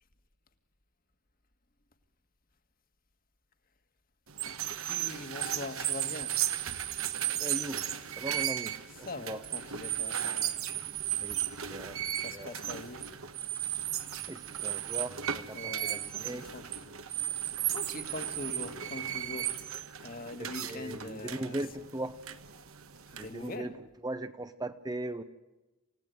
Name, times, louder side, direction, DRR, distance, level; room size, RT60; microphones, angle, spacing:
sound 1, 4.3-23.5, right 11 dB, 70° right, 1.5 m, -35 dB
voice 1, 4.9-6.4 9.0-10.6 12.2-13.1 15.5-16.8 17.6-21.6 23.1-23.8, left 2 dB, 40° left, 1.8 m, -43 dB
voice 2, 7.4-7.8 8.2-9.4 11.2-11.4 11.7-12.0 12.3-12.6 14.3-16.4 20.4-22.2 23.2-23.7 24.0-25.2, right 1 dB, 20° right, 0.8 m, -39 dB
28.5 x 16.5 x 9.2 m
head